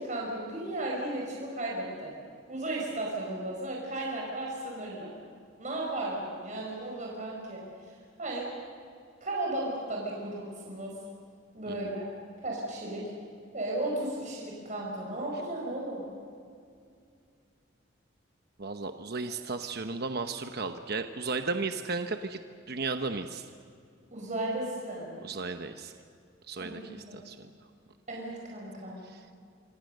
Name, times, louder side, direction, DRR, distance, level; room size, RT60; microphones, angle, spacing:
voice 1, 0.0-2.1 2.5-5.1 5.6-8.5 9.2-10.9 11.5-12.1 12.4-13.1 13.5-16.0 19.3-19.4 24.1-25.2 26.6-27.2 28.1-29.0, right 1 dB, 40° right, -2 dB, 5.0 m, -35 dB
voice 2, 18.6-22.4 22.7-23.4 25.2-25.9 26.5-27.5 29.0-29.2, right 3 dB, 55° right, 7 dB, 1.0 m, -35 dB
26.5 x 26.0 x 6.6 m, 2.4 s
head